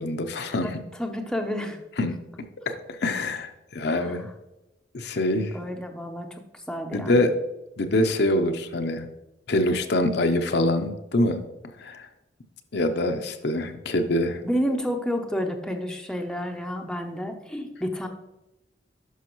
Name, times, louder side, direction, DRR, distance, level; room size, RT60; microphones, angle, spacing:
voice 1, 0.0-0.8 2.0-2.2 2.7-4.3 4.9-5.6 6.9-7.4 7.8-9.1 9.5-11.4 11.8-12.1 12.7-14.4, left 1 dB, 65° left, 7 dB, 0.7 m, -25 dB
voice 2, 0.6-1.8 3.9-4.2 5.5-7.3 14.4-18.1, equal, 5° left, 4 dB, 0.6 m, -30 dB
11.0 x 5.5 x 3.0 m, 0.96 s
head